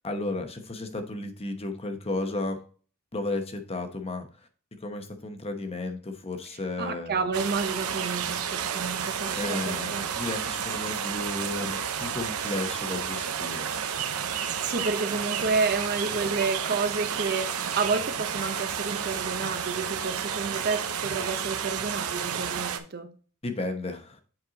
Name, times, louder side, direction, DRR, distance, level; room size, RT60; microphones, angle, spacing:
voice 1, 0.0-2.6 3.1-4.3 4.8-7.3 9.4-13.7 23.4-24.2, left 2 dB, 25° left, 0.9 m, -33 dB
voice 2, 6.8-10.1 14.6-23.1, right 4 dB, 45° right, 0.8 m, -30 dB
sound 1, 7.3-22.8, right 7 dB, 80° right, 0.8 m, -31 dB
7.7 x 4.4 x 3.9 m
head